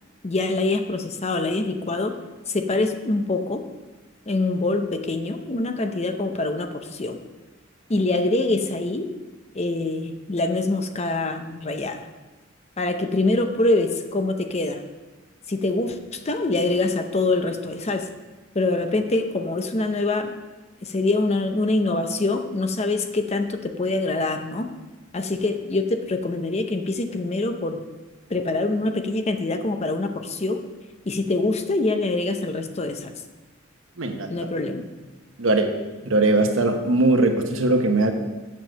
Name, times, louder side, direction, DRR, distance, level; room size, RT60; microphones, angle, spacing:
voice 1, 0.2-2.1 2.5-3.6 4.3-7.2 7.9-9.1 9.5-12.0 12.8-14.8 15.5-18.0 18.5-20.3 20.8-24.7 25.1-27.8 28.3-30.6 31.1-33.1 34.3-34.9, left 2 dB, 35° left, 6 dB, 0.7 m, -24 dB
voice 2, 34.0-34.3 35.4-35.7 36.0-38.1, right 2 dB, 80° right, 5 dB, 1.1 m, -20 dB
7.5 x 7.4 x 6.4 m, 1.2 s
head